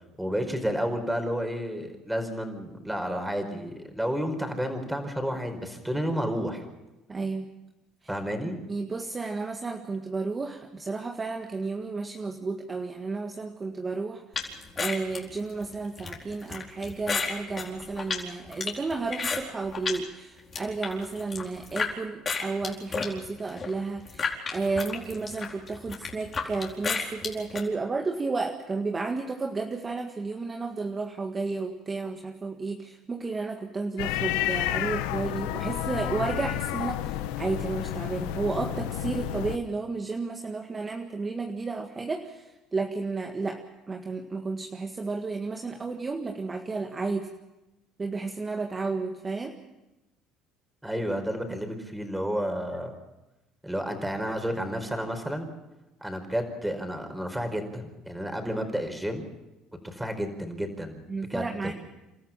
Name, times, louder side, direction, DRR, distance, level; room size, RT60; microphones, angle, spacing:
voice 1, 0.2-6.6 8.1-8.6 50.8-52.9 53.6-55.5 56.0-59.3 59.8-61.0 61.3-61.7, equal, 5° right, 6 dB, 4.9 m, -31 dB
voice 2, 7.1-7.5 8.7-47.3 48.0-49.5 61.1-61.7, right 3 dB, 25° right, 3 dB, 1.8 m, -32 dB
sound 1, 14.3-20.0 20.4-21.9 22.2-27.6, left 5 dB, 35° left, 4.5 m, -33 dB
sound 2, 34.0-39.6, left 13 dB, 85° left, 1.1 m, -30 dB
30.0 x 13.5 x 7.4 m, 1.0 s
supercardioid pair, 85°, 0 cm